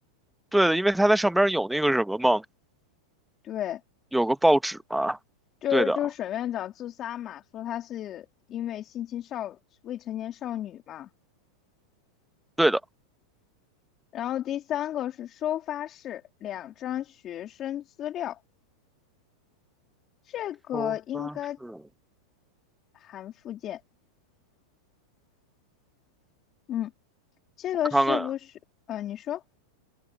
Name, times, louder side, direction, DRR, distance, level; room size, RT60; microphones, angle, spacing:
voice 1, 0.5-2.4 4.1-5.2 5.7-6.0 12.6-12.8 20.7-21.3 21.6-21.8 27.9-28.2, right 1 dB, 5° right, 1.0 m, -23 dB
voice 2, 3.4-3.8 5.6-9.6 9.8-11.1 14.1-18.4 20.2-21.6 22.9-23.8 26.7-26.9 27.6-28.6 28.9-29.4, left 11 dB, 35° left, 2.6 m, -32 dB
hypercardioid pair, 115°, 0 cm